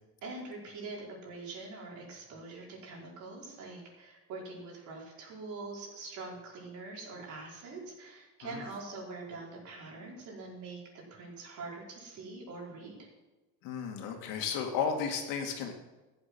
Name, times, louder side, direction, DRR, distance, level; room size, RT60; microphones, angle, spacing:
voice 1, 0.2-12.9, right 3 dB, 60° right, -2 dB, 4.9 m, -44 dB
voice 2, 13.6-15.7, left 6 dB, 75° left, 3 dB, 2.4 m, -33 dB
14.0 x 8.6 x 6.2 m, 1.1 s
cardioid pair, 140°, 33 cm